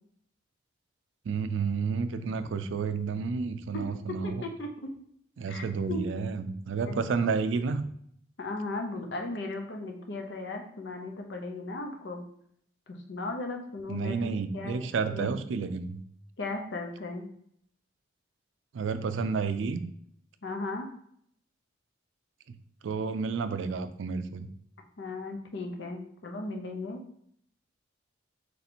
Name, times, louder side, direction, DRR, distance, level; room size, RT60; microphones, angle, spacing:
voice 1, 1.3-4.4 5.4-7.9 13.9-16.0 18.7-19.8 22.8-24.5, right 5 dB, 75° right, 10 dB, 0.4 m, -30 dB
voice 2, 3.7-4.9 5.5-6.0 6.8-7.3 8.4-12.2 12.9-15.3 16.4-17.3 20.4-20.9 25.0-27.0, left 2 dB, 65° left, 3 dB, 0.7 m, -37 dB
3.3 x 2.8 x 4.2 m, 0.68 s
head